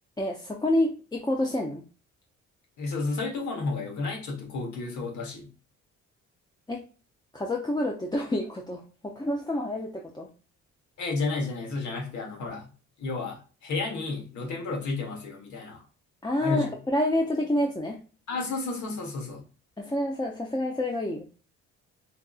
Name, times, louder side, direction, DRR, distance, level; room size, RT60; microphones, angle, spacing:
voice 1, 0.2-1.8 6.7-6.8 7.3-10.3 16.2-18.0 19.8-21.2, left 1 dB, 15° left, 0 dB, 0.5 m, -28 dB
voice 2, 2.8-5.5 11.0-12.7 13.0-15.8 16.4-16.7 18.3-19.4, left 3 dB, 70° left, 2 dB, 1.2 m, -32 dB
4.5 x 2.6 x 2.3 m, 0.36 s
cardioid pair, 90°, 30 cm